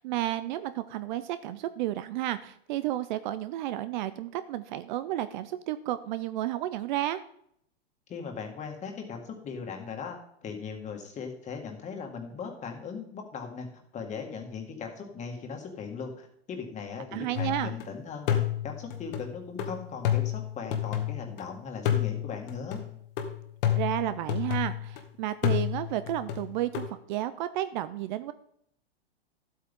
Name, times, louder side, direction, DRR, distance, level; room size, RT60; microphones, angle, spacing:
voice 1, 0.0-7.2 17.1-17.7 23.7-28.3, right 13 dB, 50° right, 13 dB, 0.6 m, -32 dB
voice 2, 8.1-13.7 13.9-18.4 18.6-22.8, left 5 dB, 20° left, 3 dB, 2.1 m, -39 dB
sound 1, 17.4-17.9 18.3-21.4 21.9-25.0 25.4-26.9, left 11 dB, 55° left, 1.7 m, -30 dB
12.5 x 8.3 x 3.7 m, 0.70 s
hypercardioid pair, 135°, 32 cm